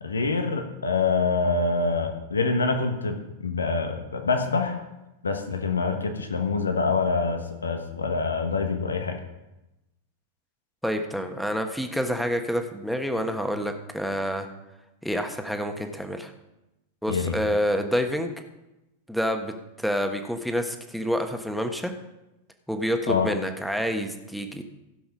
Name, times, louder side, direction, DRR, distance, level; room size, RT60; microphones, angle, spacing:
voice 1, 0.0-4.8 5.2-9.2 17.1-17.4 23.1-23.3, left 4 dB, 85° left, 6 dB, 1.2 m, -26 dB
voice 2, 10.8-14.5 15.0-16.3 17.0-18.3 19.1-21.9 22.7-24.6, equal, ahead, 4 dB, 1.3 m, -28 dB
16.0 x 5.8 x 5.4 m, 0.97 s
hypercardioid pair, 100°, 0 cm